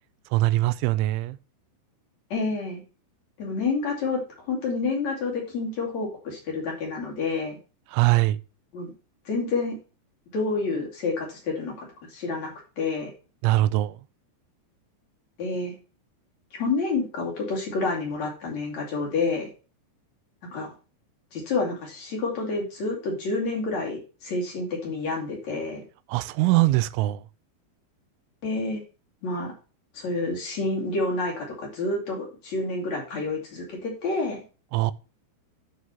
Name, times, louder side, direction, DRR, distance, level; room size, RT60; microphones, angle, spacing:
voice 1, 0.3-1.4 7.9-8.4 13.4-14.0 26.1-27.2 34.7-34.9, right 17 dB, 90° right, 3.0 m, -22 dB
voice 2, 2.3-2.8 3.4-4.2 4.5-7.6 8.7-8.9 9.2-9.8 10.3-13.1 15.4-15.7 16.5-19.5 20.5-20.7 21.3-25.8 28.4-28.8 29.2-29.5 29.9-34.4, left 3 dB, 45° left, 3.4 m, -29 dB
10.5 x 4.8 x 5.6 m
omnidirectional pair, 5.3 m